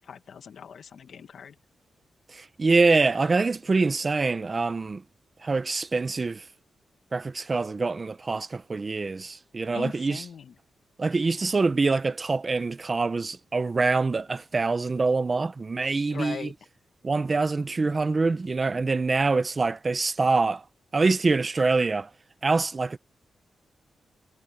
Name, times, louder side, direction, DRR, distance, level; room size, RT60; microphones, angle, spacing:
voice 1, 0.0-1.5 9.7-10.5 11.2-11.3 16.1-16.5, left 7 dB, 65° left, 1.4 m, -40 dB
voice 2, 2.4-5.0 5.4-6.4 7.1-10.2 11.0-16.5 17.0-20.6 20.9-22.1 22.4-23.0, right 3 dB, 30° right, 0.8 m, -25 dB
wide cardioid pair, 135°, 0 cm